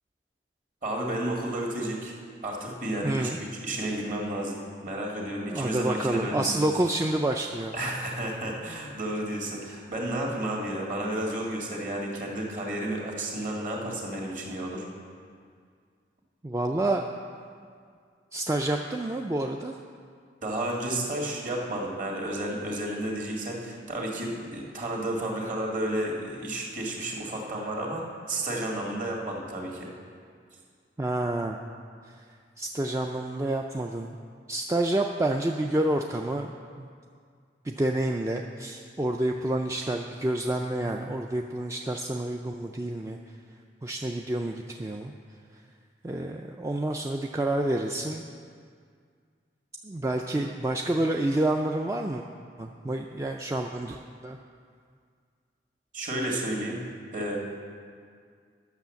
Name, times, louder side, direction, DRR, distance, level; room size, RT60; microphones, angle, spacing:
voice 1, 0.8-2.2 2.4-3.3 3.6-6.7 7.7-14.9 20.4-29.9 55.9-56.8 57.1-57.4, right 1 dB, 45° right, -2 dB, 1.9 m, -32 dB
voice 2, 3.0-3.4 5.5-7.9 16.4-17.1 18.3-19.8 31.0-31.6 32.0-32.2 32.6-34.1 34.5-36.9 37.6-43.2 43.8-45.1 46.0-48.2 49.8-52.2 52.6-54.4, right 1 dB, 15° right, 2 dB, 0.3 m, -28 dB
10.5 x 6.3 x 7.0 m, 2.1 s
head